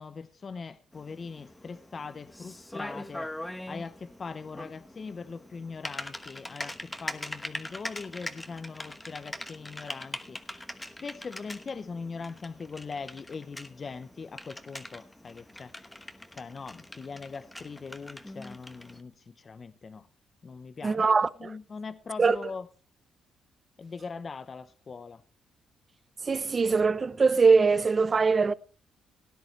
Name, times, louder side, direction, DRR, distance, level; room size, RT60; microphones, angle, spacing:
voice 1, 0.0-3.3 3.7-10.4 11.0-15.7 16.3-20.1 20.4-21.0 21.4-22.7 23.8-25.2, left 5 dB, 40° left, 0.7 m, -41 dB
Typing, 0.9-19.0, left 1 dB, 10° left, 1.1 m, -42 dB
voice 2, 20.8-21.5 22.2-22.4 26.3-28.5, right 4 dB, 35° right, 0.6 m, -22 dB
17.5 x 10.5 x 3.1 m
cardioid pair, 90°, 0 cm